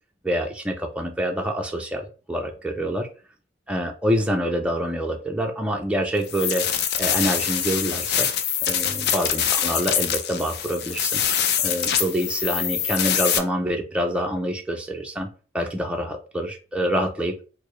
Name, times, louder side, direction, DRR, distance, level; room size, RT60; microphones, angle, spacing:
voice 1, 0.2-3.1 3.7-6.7 7.0-8.3 8.7-11.2 11.6-15.3 15.5-17.4, equal, 5° right, 2 dB, 0.4 m, -26 dB
sound 1, 6.2-13.4, left 8 dB, 55° left, 0.4 m, -24 dB
4.6 x 2.0 x 3.0 m, 0.36 s
head